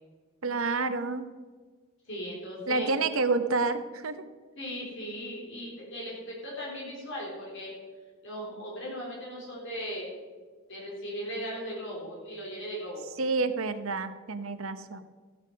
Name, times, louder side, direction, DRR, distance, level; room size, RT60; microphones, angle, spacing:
voice 1, 0.4-1.2 2.7-4.2 13.2-15.0, right 3 dB, 60° right, 10 dB, 0.9 m, -29 dB
voice 2, 2.1-2.9 4.6-7.7 8.2-10.1 10.7-13.0, equal, 55° left, -4 dB, 3.9 m, -37 dB
14.5 x 8.8 x 5.2 m, 1.4 s
head